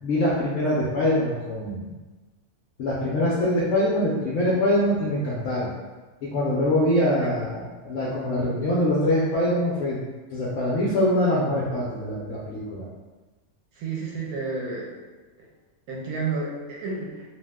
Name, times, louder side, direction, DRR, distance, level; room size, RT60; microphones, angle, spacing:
voice 1, 0.0-1.9 2.8-5.7 6.3-10.0 10.3-12.8, left 1 dB, 65° left, -6 dB, 0.9 m, -24 dB
voice 2, 13.8-14.9 15.9-17.2, right 4 dB, 80° right, -2 dB, 1.1 m, -31 dB
2.6 x 2.1 x 3.4 m, 1.2 s
omnidirectional pair, 1.6 m